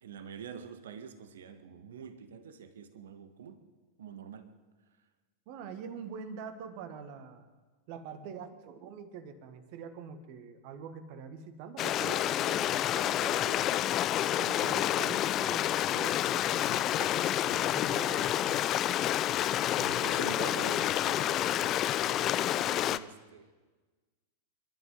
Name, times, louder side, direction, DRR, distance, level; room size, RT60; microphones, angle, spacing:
voice 1, 0.0-3.6 4.0-4.5 19.7-23.5, right 7 dB, 60° right, 1.4 m, -46 dB
voice 2, 5.5-7.5 7.9-13.8 14.4-18.7, right 6 dB, 45° right, 1.8 m, -44 dB
Stream, 11.8-23.0, left 12 dB, 35° left, 0.5 m, -29 dB
29.0 x 12.5 x 3.9 m
figure-of-eight pair, 90°, 0 cm